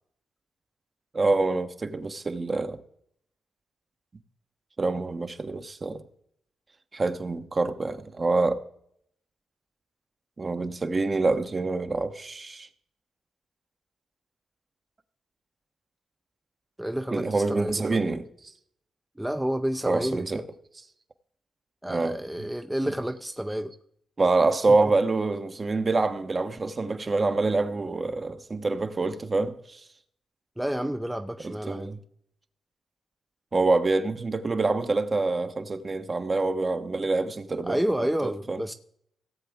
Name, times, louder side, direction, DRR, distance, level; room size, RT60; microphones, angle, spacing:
voice 1, 1.1-2.8 4.8-6.0 6.9-8.6 10.4-12.7 17.1-18.2 19.9-20.4 21.9-22.2 24.2-29.8 31.4-32.0 33.5-38.6, right 3 dB, 35° right, 1.0 m, -26 dB
voice 2, 16.8-18.0 19.2-20.4 21.8-23.7 24.7-24.8 30.6-31.9 37.6-38.7, right 1 dB, 5° right, 0.6 m, -30 dB
17.0 x 7.7 x 3.6 m
cardioid pair, 65°, 0 cm